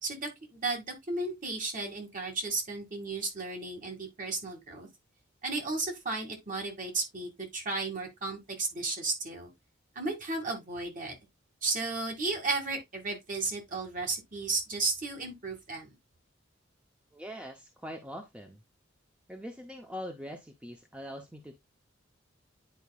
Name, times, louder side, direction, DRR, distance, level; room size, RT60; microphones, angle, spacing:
voice 1, 0.0-4.9 5.4-9.5 10.0-11.2 11.6-15.9, right 3 dB, 45° right, 2.2 m, -34 dB
voice 2, 17.1-18.6 19.3-21.6, equal, 5° right, 0.7 m, -42 dB
10.0 x 4.7 x 2.4 m
head